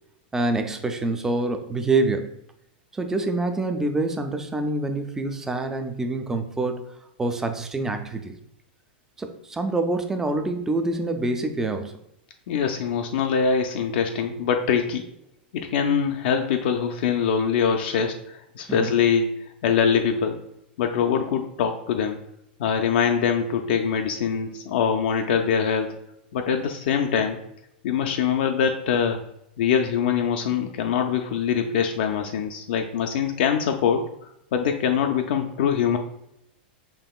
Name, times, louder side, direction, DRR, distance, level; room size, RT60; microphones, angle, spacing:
voice 1, 0.3-2.3 2.9-6.8 7.2-8.4 9.2-11.9 18.7-19.0, right 2 dB, 10° right, 6 dB, 0.3 m, -26 dB
voice 2, 12.5-15.0 15.5-19.2 19.6-20.4 20.8-22.2 22.6-25.9 26.3-27.4 27.8-29.2 29.6-34.0 34.5-36.0, left 7 dB, 65° left, 4 dB, 0.4 m, -23 dB
5.3 x 2.9 x 2.3 m, 0.78 s
supercardioid pair, 145°, 6 cm